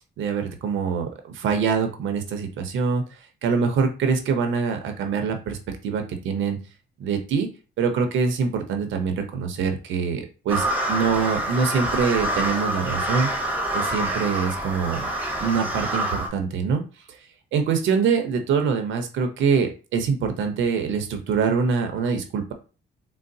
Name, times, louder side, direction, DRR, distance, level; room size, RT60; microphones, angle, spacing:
voice 1, 0.2-3.0 3.4-5.6 5.8-6.6 7.0-7.5 7.8-13.3 13.7-15.1 15.4-16.8 17.5-22.5, right 5 dB, 75° right, 6 dB, 0.7 m, -24 dB
sound 1, 10.5-16.3, right 1 dB, 10° right, 0.8 m, -26 dB
3.9 x 2.0 x 2.6 m, 0.33 s
cardioid pair, 90°, 20 cm